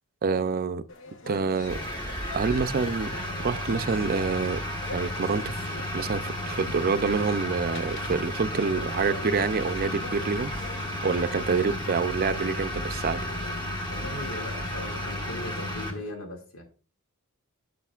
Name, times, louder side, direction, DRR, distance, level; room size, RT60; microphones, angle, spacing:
voice 1, 0.2-0.8 1.3-1.8 2.3-4.6 4.9-5.7 5.9-10.5 11.0-13.2, right 4 dB, 45° right, 0.5 m, -27 dB
sound 1, 0.9-16.1, left 3 dB, 65° left, 1.0 m, -44 dB
sound 2, 1.6-15.9, left 1 dB, 20° left, 1.3 m, -33 dB
voice 2, 13.9-16.6, left 1 dB, 80° left, 2.3 m, -38 dB
10.0 x 6.9 x 2.4 m
head